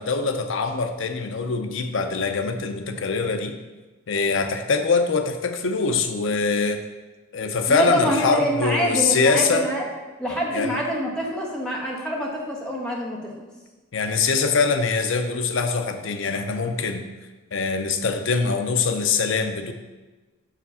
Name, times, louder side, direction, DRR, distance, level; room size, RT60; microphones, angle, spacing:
voice 1, 0.0-3.6 4.1-6.8 7.3-9.7 10.5-10.8 13.9-17.0 17.5-19.7, left 4 dB, 60° left, 6 dB, 0.6 m, -23 dB
voice 2, 7.7-9.9 10.2-13.5, equal, 5° left, -3 dB, 1.1 m, -25 dB
6.3 x 5.0 x 5.5 m, 1.2 s
head